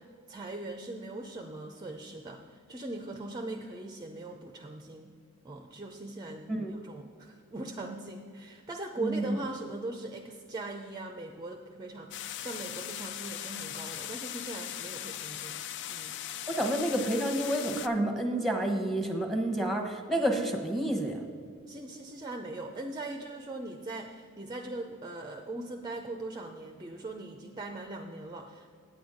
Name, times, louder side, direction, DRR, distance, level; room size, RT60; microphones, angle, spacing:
voice 1, 0.0-5.1 5.4-15.5 15.9-16.2 21.7-28.7, right 2 dB, 20° right, 3 dB, 0.5 m, -40 dB
voice 2, 9.0-9.4 16.6-21.2, right 1 dB, ahead, 3 dB, 0.9 m, -29 dB
sound 1, 12.1-17.9, left 11 dB, 55° left, 0.4 m, -39 dB
9.1 x 7.9 x 5.0 m, 2.2 s
head